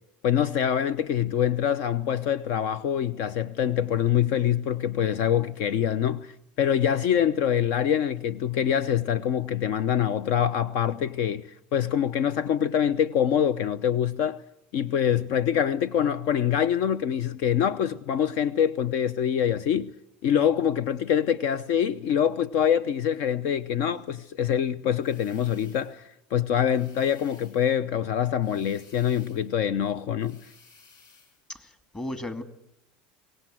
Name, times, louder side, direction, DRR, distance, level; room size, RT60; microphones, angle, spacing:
voice 1, 0.2-6.3 6.6-14.4 14.7-19.9 20.2-30.4, left 9 dB, 60° left, 0.8 m, -25 dB
sound 1, 25.0-26.1 26.7-27.8 28.4-29.6 30.2-31.4, left 4 dB, 40° left, 7.4 m, -57 dB
voice 2, 31.5-32.4, left 1 dB, 15° left, 2.3 m, -35 dB
23.5 x 18.5 x 7.7 m
supercardioid pair, 135°, 5 cm